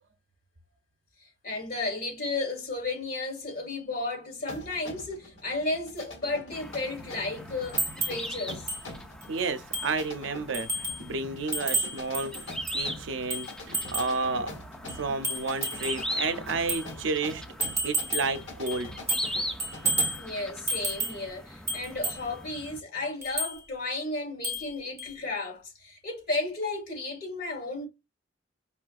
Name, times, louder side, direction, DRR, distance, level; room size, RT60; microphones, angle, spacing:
voice 1, 1.4-8.7 20.2-27.9, left 2 dB, 50° left, 1.8 m, -33 dB
sound 1, 4.5-20.3, left 2 dB, 90° left, 1.3 m, -44 dB
sound 2, 6.5-22.8, equal, 5° left, 0.4 m, -40 dB
sound 3, 7.8-8.2 8.7-8.8 9.2-9.3 9.7-10.0 10.5-11.0 11.5-12.8 13.3-14.2 14.9-16.0 16.7-16.9 17.6-18.4 18.7-19.3 19.6-20.2 20.7-21.2 21.7-22.2 23.2-23.6 24.4-24.7 25.0-25.1, right 2 dB, 15° right, 1.3 m, -31 dB
voice 2, 9.3-14.5 15.0-17.4 17.8-18.9, right 3 dB, 85° right, 0.6 m, -31 dB
5.5 x 2.4 x 2.4 m
head